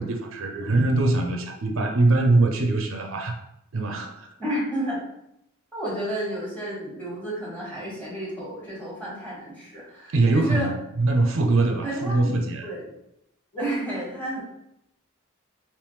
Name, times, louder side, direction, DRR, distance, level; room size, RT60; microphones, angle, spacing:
voice 1, 0.0-3.3 3.7-4.3 10.1-10.7 11.0-12.7, right 2 dB, 70° right, 4 dB, 0.5 m, -22 dB
voice 2, 4.4-5.0 5.7-10.7 11.8-12.3 12.6-12.9 13.5-14.4, right 1 dB, 10° left, -7 dB, 1.3 m, -31 dB
3.4 x 3.0 x 3.1 m, 0.81 s
head